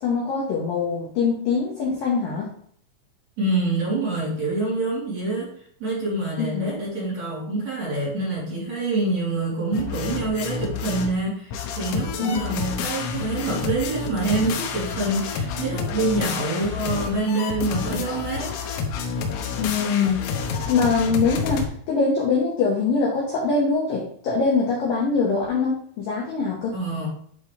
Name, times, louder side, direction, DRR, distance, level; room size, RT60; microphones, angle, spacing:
voice 1, 0.0-2.5 6.4-6.7 12.2-12.6 16.0-16.3 19.6-20.2 20.7-26.7, left 4 dB, 70° left, -4 dB, 2.2 m, -23 dB
voice 2, 3.4-5.5 5.8-18.6 26.7-27.1, right 2 dB, 40° right, -7 dB, 3.4 m, -26 dB
sound 1, 9.7-11.2 11.5-21.7, left 5 dB, 85° left, 3.6 m, -29 dB
11.0 x 4.0 x 3.3 m, 0.62 s
omnidirectional pair, 5.8 m